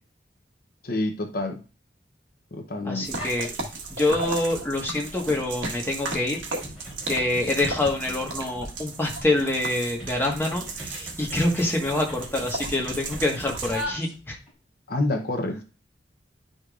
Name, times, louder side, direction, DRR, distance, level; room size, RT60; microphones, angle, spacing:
voice 1, 0.8-1.6 2.5-3.1 14.9-15.6, left 2 dB, 55° left, 5 dB, 0.8 m, -28 dB
voice 2, 2.8-3.5 3.9-6.4 7.1-14.4, left 2 dB, 15° left, -1 dB, 1.5 m, -26 dB
sound 1, 3.0-3.5 3.9-14.5, equal, 5° right, 3.5 m, -42 dB
sound 2, 3.0-13.8, right 3 dB, 90° right, 1.5 m, -35 dB
10.0 x 5.1 x 2.5 m, 0.34 s
head